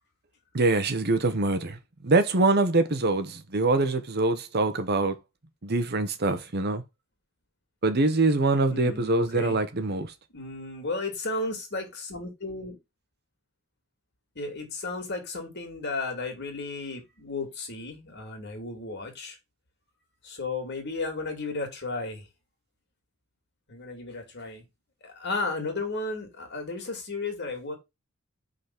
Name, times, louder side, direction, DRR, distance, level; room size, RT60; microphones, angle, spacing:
voice 1, 0.5-1.8 2.0-5.2 5.6-6.8 7.8-10.1, right 2 dB, 50° right, 1.0 m, -24 dB
voice 2, 8.7-9.6 10.3-12.8 14.4-19.4 20.2-22.3 23.7-24.6 25.0-27.7, left 3 dB, 55° left, 2.6 m, -34 dB
5.7 x 4.0 x 5.9 m
head